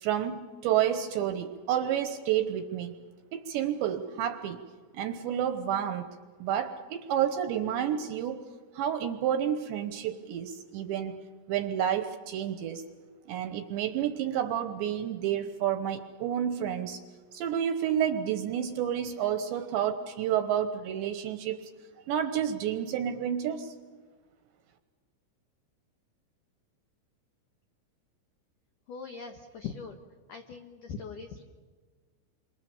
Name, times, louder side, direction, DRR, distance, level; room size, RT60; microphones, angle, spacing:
voice 1, 0.0-2.9 3.3-4.6 4.9-6.1 6.4-8.4 8.8-11.1 11.5-12.8 13.3-17.0 17.3-21.6 22.1-23.7, right 9 dB, 75° right, 8 dB, 2.9 m, -30 dB
voice 2, 28.9-30.0 30.3-31.4, left 6 dB, 75° left, 4 dB, 1.9 m, -41 dB
28.5 x 25.5 x 7.1 m, 1.5 s
omnidirectional pair, 5.9 m